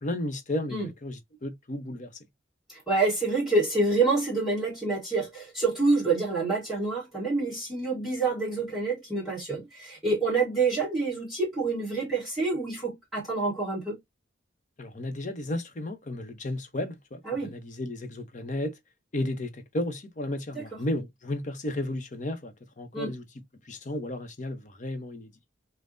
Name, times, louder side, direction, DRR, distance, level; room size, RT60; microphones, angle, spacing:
voice 1, 0.0-2.1 14.8-18.8 19.1-23.2 23.6-25.3, left 1 dB, 40° left, 0.7 m, -33 dB
voice 2, 2.7-14.0 17.2-17.5 20.5-20.6 22.9-23.1, right 3 dB, ahead, 1.3 m, -27 dB
5.3 x 2.1 x 2.5 m
head